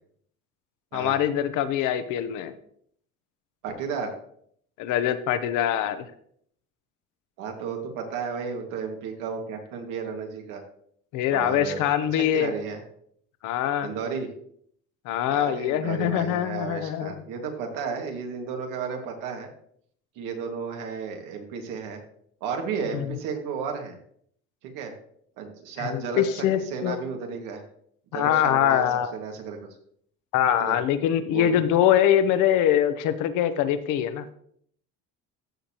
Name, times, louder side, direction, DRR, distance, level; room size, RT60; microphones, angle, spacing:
voice 1, 0.9-2.5 4.8-6.0 11.1-12.5 13.4-13.9 15.0-17.2 22.9-23.1 25.8-27.0 28.1-29.1 30.3-34.3, left 10 dB, 75° left, 11 dB, 1.0 m, -23 dB
voice 2, 3.6-4.2 7.4-10.6 11.3-11.8 12.3-12.8 13.8-14.3 15.3-19.5 20.2-22.0 22.4-24.0 24.6-24.9 25.4-26.4 26.7-27.6 28.1-28.9 29.1-29.6 30.6-30.8 31.3-31.6, right 6 dB, 85° right, 3 dB, 2.1 m, -33 dB
14.5 x 6.5 x 3.0 m, 0.65 s
cardioid pair, 145°, 31 cm